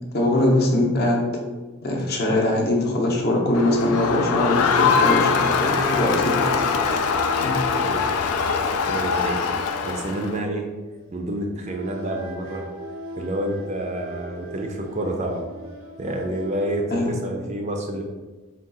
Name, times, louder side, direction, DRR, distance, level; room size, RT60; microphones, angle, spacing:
voice 1, 0.1-1.3 1.8-7.1 7.4-7.6 16.9-17.1, left 1 dB, 45° left, 0 dB, 0.7 m, -22 dB
Crowd, 3.5-10.4, left 5 dB, 85° left, 0.4 m, -22 dB
sound 1, 4.6-11.2 11.6-17.2, right 1 dB, 85° right, 0.6 m, -39 dB
voice 2, 8.9-9.5 9.8-10.7 11.1-12.7 13.2-15.4 16.0-18.0, right 1 dB, 30° right, 2 dB, 0.4 m, -28 dB
3.7 x 2.3 x 3.8 m, 1.2 s
head